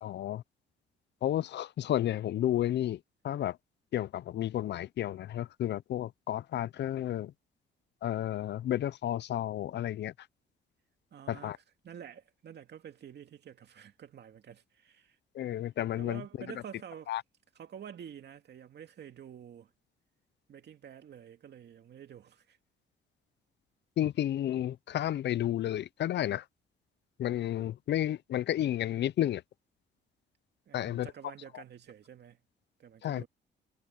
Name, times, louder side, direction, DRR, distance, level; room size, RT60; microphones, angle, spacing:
voice 1, 0.0-0.4 1.2-3.6 3.9-7.3 8.0-10.1 11.3-11.6 15.3-16.2 17.1-17.2 24.0-26.5 27.2-29.4 30.7-31.1 31.5-31.6 33.0-33.3, left 12 dB, 60° left, 0.6 m, -32 dB
voice 2, 11.1-15.2 16.0-17.2 17.6-19.7 20.5-22.6 30.7-32.4 32.8-33.3, right 8 dB, 60° right, 2.4 m, -49 dB
cardioid pair, 90°, 20 cm